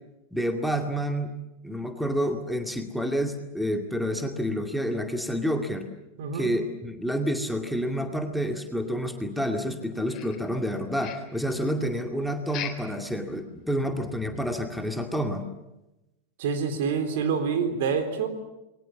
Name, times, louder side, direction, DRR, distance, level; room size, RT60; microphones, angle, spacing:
voice 1, 0.3-1.3 1.6-5.9 6.3-15.5, equal, ahead, 4 dB, 2.3 m, -29 dB
voice 2, 6.2-6.5 16.4-18.3, right 6 dB, 55° right, 8 dB, 3.7 m, -27 dB
sound 1, 10.1-10.7 11.0-11.4 12.5-13.0 13.3-13.4 13.9-14.0 14.5-14.6, left 10 dB, 30° left, 3.8 m, -38 dB
28.5 x 22.0 x 7.3 m, 0.95 s
figure-of-eight pair, 90°, 0 cm